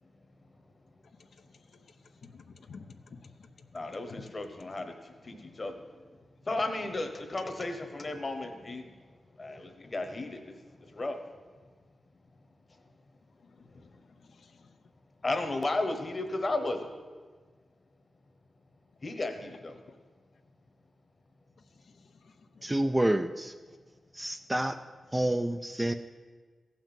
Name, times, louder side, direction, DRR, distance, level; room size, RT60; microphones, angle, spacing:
voice 1, 1.2-3.7 13.4-14.7 19.9-20.0 21.8-22.6, left 5 dB, 65° left, 7 dB, 0.7 m, -54 dB
voice 2, 3.7-4.9 5.2-5.7 6.5-8.8 9.4-10.5 10.9-11.2 15.2-16.9 19.0-19.7, left 2 dB, 25° left, 6 dB, 1.2 m, -34 dB
voice 3, 22.6-23.5 24.1-24.8 25.1-25.9, right 1 dB, 10° right, 8 dB, 0.4 m, -28 dB
15.0 x 5.9 x 8.9 m, 1.4 s
wide cardioid pair, 180°, 0 cm